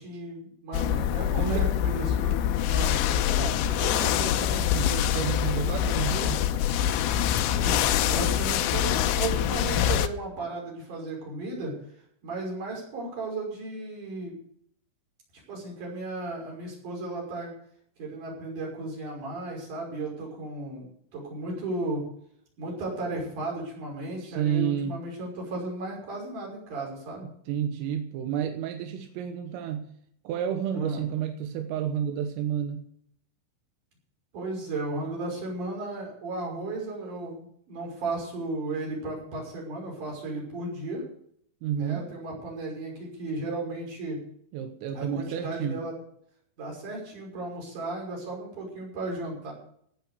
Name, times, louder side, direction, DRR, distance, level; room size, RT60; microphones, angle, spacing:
voice 1, 0.0-3.6 7.6-11.8 12.2-14.3 15.5-17.5 18.0-22.0 22.6-27.3 30.7-31.0 34.3-41.0 41.7-44.2 44.9-46.0 46.6-49.5, right 2 dB, 40° right, -1 dB, 7.0 m, -35 dB
sound 1, 0.7-10.1, left 10 dB, 80° left, 2.7 m, -25 dB
voice 2, 1.3-1.7 3.4-6.5 24.2-25.0 27.2-29.9 30.3-32.9 41.6-42.1 44.5-45.8, right 9 dB, 85° right, 6 dB, 3.8 m, -31 dB
17.0 x 7.7 x 6.8 m, 0.66 s
omnidirectional pair, 5.8 m